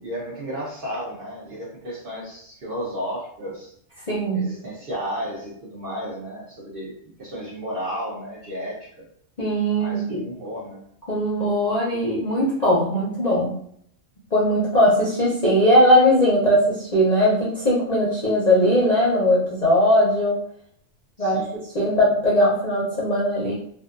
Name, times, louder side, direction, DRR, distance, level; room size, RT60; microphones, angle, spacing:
voice 1, 0.0-3.7 4.3-6.9 7.2-9.1 9.8-10.8 21.2-21.6, equal, 55° right, -4 dB, 0.7 m, -33 dB
voice 2, 4.1-4.5 9.4-10.2 11.1-13.6 14.3-20.4 21.2-21.5 21.7-23.5, equal, 45° left, -7 dB, 0.5 m, -19 dB
2.6 x 2.3 x 2.4 m, 0.65 s
omnidirectional pair, 1.4 m